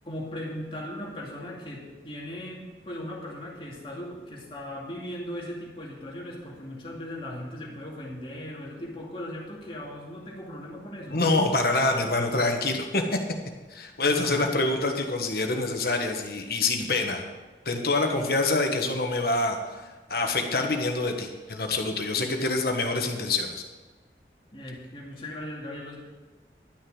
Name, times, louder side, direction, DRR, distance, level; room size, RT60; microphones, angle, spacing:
voice 1, 0.1-11.2 14.1-14.8 18.0-18.3 22.1-22.4 24.5-26.0, left 1 dB, 30° left, -3 dB, 2.4 m, -38 dB
voice 2, 11.1-13.0 13.7-17.3 17.6-19.8 20.1-23.5, left 2 dB, 55° left, 4 dB, 1.4 m, -26 dB
11.5 x 6.5 x 7.2 m, 1.2 s
head